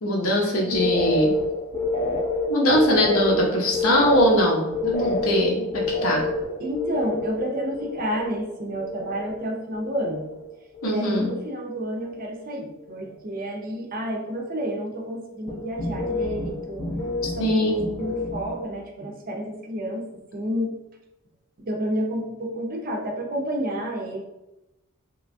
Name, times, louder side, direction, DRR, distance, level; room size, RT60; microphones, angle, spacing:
voice 1, 0.0-1.3 2.5-5.6 6.0-6.2 10.8-11.3 17.4-17.8, equal, 80° left, -1 dB, 0.7 m, -21 dB
sound 1, 0.6-9.5 9.7-10.4 10.7-11.4 11.8-12.2 15.5-18.6, left 2 dB, 30° left, 0.5 m, -28 dB
voice 2, 6.6-10.2 10.8-16.8 17.3-17.7 18.0-20.1 20.3-20.8 21.6-24.2, equal, 45° right, 1 dB, 0.4 m, -30 dB
3.0 x 2.2 x 2.5 m, 0.94 s
head